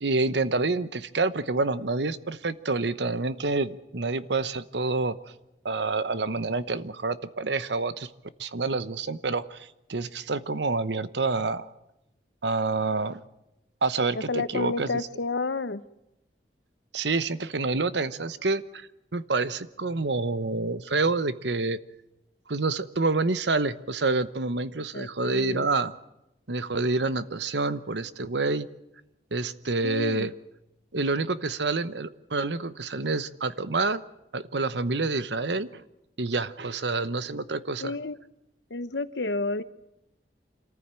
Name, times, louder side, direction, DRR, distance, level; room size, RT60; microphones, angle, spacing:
voice 1, 0.0-5.3 5.6-8.1 8.4-11.7 12.4-13.2 13.8-14.9 16.9-21.8 22.5-25.9 26.5-28.7 29.3-30.3 30.9-34.0 34.3-35.8 36.2-37.9, right 3 dB, 85° right, 14 dB, 1.0 m, -28 dB
voice 2, 14.1-15.8 24.8-25.7 29.8-30.3 37.8-38.2 38.7-39.6, left 3 dB, 90° left, 13 dB, 1.0 m, -30 dB
26.5 x 14.5 x 9.0 m, 0.89 s
head